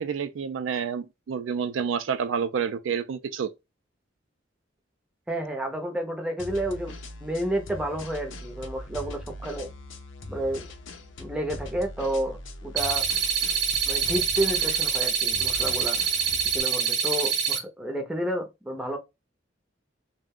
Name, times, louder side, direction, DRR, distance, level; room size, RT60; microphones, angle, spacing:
voice 1, 0.0-3.5, right 6 dB, 80° right, 0.4 m, -29 dB
voice 2, 5.3-6.9 7.2-9.7 10.3-10.6 11.2-13.1 13.8-16.0 16.5-19.0, right 1 dB, 5° right, 0.6 m, -30 dB
sound 1, 6.4-16.6, left 1 dB, 80° left, 0.6 m, -41 dB
sound 2, 12.8-17.6, right 7 dB, 60° right, 0.8 m, -25 dB
2.4 x 2.1 x 3.5 m
head